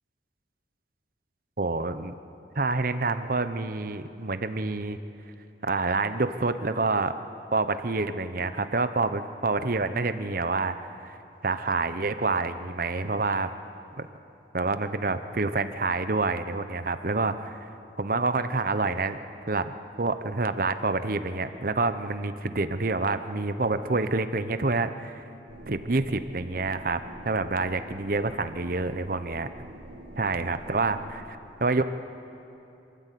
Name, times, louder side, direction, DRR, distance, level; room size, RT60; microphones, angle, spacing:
voice 1, 1.6-2.1 2.6-5.0 5.6-7.1 7.5-10.7 11.0-11.2 11.4-13.5 14.0-14.1 14.5-17.5 18.0-25.2 25.7-27.0 27.2-29.5 30.2-31.8, right 3 dB, 55° right, 10 dB, 0.9 m, -27 dB
sound 1, 25.5-31.3, right 1 dB, 80° right, 2.1 m, -46 dB
26.5 x 13.5 x 8.5 m, 2.8 s
head